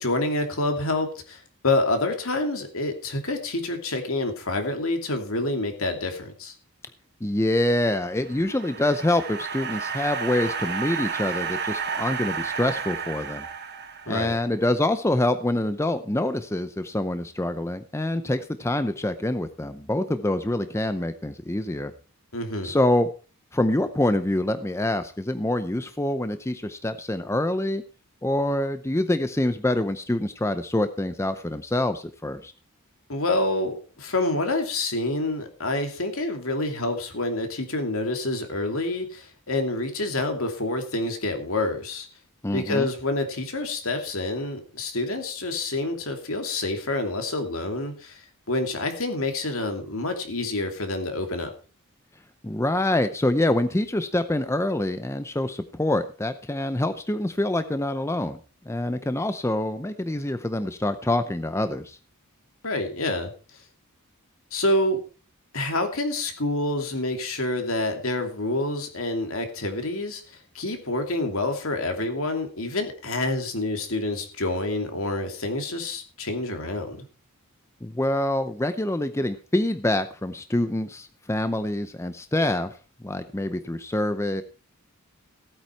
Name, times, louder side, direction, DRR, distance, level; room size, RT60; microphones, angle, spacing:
voice 1, 0.0-6.5 14.1-14.4 22.3-22.7 33.1-42.1 42.5-51.5 62.6-63.3 64.5-65.0 65.5-77.0, left 2 dB, 65° left, 5 dB, 2.7 m, -27 dB
voice 2, 7.2-13.5 14.1-21.9 22.6-23.1 23.5-27.8 28.2-32.5 42.4-42.9 52.4-58.4 58.7-62.0 77.8-84.4, left 1 dB, 10° left, 10 dB, 0.6 m, -26 dB
sound 1, 8.1-14.5, right 6 dB, 50° right, 1.7 m, -32 dB
15.5 x 8.8 x 4.5 m, 0.36 s
head